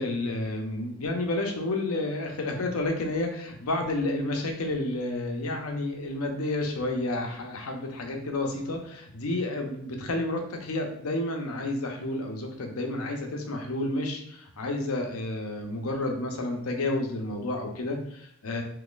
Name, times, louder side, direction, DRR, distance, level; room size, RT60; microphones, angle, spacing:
voice 1, 0.0-18.6, left 2 dB, 85° left, 3 dB, 0.7 m, -30 dB
3.9 x 2.9 x 2.4 m, 0.71 s
head